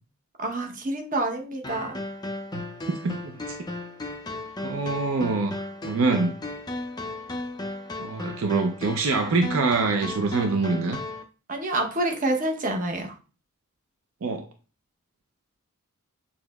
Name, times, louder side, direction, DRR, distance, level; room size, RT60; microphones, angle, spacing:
voice 1, 0.4-2.0 11.5-13.1, right 2 dB, 35° right, 3 dB, 0.8 m, -27 dB
sound 1, 1.6-11.2, left 2 dB, 20° left, 0.4 m, -35 dB
voice 2, 2.9-3.4 4.6-6.3 8.0-11.0 14.2-14.5, right 3 dB, 65° right, 5 dB, 0.5 m, -25 dB
6.3 x 2.8 x 2.3 m, 0.35 s
head